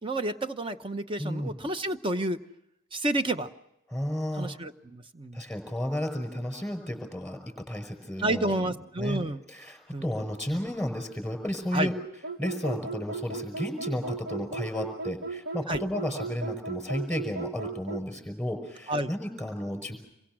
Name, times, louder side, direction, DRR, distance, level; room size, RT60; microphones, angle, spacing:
voice 1, 0.0-2.4 2.9-3.5 4.4-5.4 8.2-9.4 9.9-10.1 11.7-11.9 15.7-15.8 18.9-19.1, right 1 dB, 25° right, 9 dB, 0.9 m, -30 dB
voice 2, 1.2-1.6 3.9-4.5 5.3-9.2 9.5-11.9 12.4-20.0, equal, 5° left, 6 dB, 5.5 m, -33 dB
sound 1, 12.2-18.1, right 4 dB, 50° right, 1.2 m, -36 dB
27.0 x 23.0 x 6.1 m, 0.86 s
head